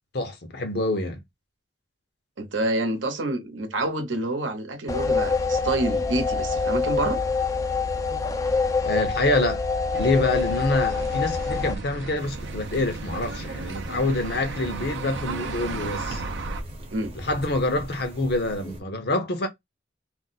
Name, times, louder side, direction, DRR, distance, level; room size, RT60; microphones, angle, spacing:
voice 1, 0.1-1.2 8.8-9.6 10.0-16.2 17.1-19.5, left 2 dB, 55° left, 0.7 m, -26 dB
voice 2, 2.4-7.2 16.9-17.1, right 2 dB, 80° right, 0.8 m, -27 dB
sound 1, 4.9-11.7, left 4 dB, 15° left, 0.3 m, -25 dB
sound 2, 9.9-16.6, right 3 dB, 65° right, 0.5 m, -34 dB
sound 3, 12.2-18.8, right 1 dB, 30° right, 0.7 m, -42 dB
2.5 x 2.1 x 3.9 m
head